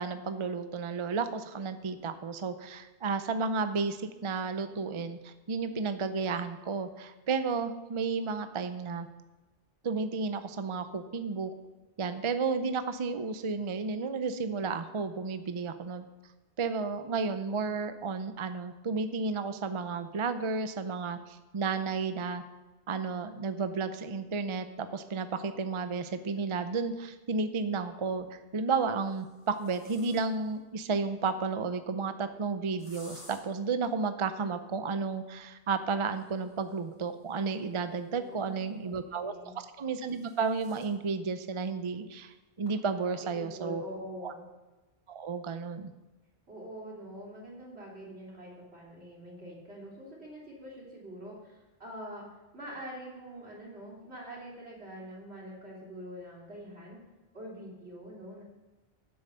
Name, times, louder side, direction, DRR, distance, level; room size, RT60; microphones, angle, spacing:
voice 1, 0.0-9.1 9.8-11.5 12.0-16.0 16.6-22.4 22.9-43.8 44.2-44.3 45.1-45.9, right 4 dB, 35° right, 10 dB, 0.6 m, -32 dB
sound 1, 26.4-26.5 28.0-28.4 29.0-30.6 32.8-33.4 36.0-38.6 39.6-41.0 41.4-41.5 41.9-42.0 42.7-42.8 43.1-43.5, left 1 dB, 40° left, 3.9 m, -57 dB
voice 2, 38.1-39.5 43.3-44.4 46.5-52.2 52.5-57.0 57.3-58.4, equal, 85° right, -3 dB, 3.7 m, -45 dB
9.6 x 7.9 x 6.7 m, 1.1 s
omnidirectional pair, 1.1 m